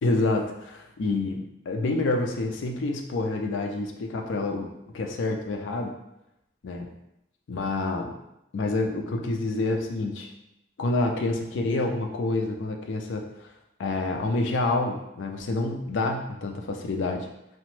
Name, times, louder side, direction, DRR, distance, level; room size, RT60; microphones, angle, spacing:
voice 1, 0.0-4.7 4.9-5.9 6.6-6.9 7.5-8.2 8.5-10.3 10.8-13.5 13.8-17.3, left 2 dB, 75° left, 3 dB, 0.4 m, -28 dB
2.9 x 2.1 x 3.1 m, 0.84 s
head